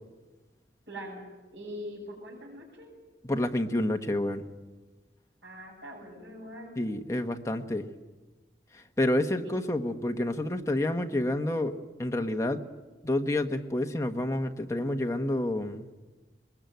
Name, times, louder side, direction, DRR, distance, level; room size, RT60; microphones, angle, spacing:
voice 1, 0.9-1.2 1.5-2.9 5.4-6.7 9.4-9.5, equal, 70° right, -6 dB, 7.5 m, -42 dB
voice 2, 3.2-4.4 6.8-7.9 8.7-12.6 13.0-15.9, left 1 dB, 15° left, 5 dB, 1.2 m, -29 dB
22.0 x 20.5 x 9.3 m, 1.2 s
head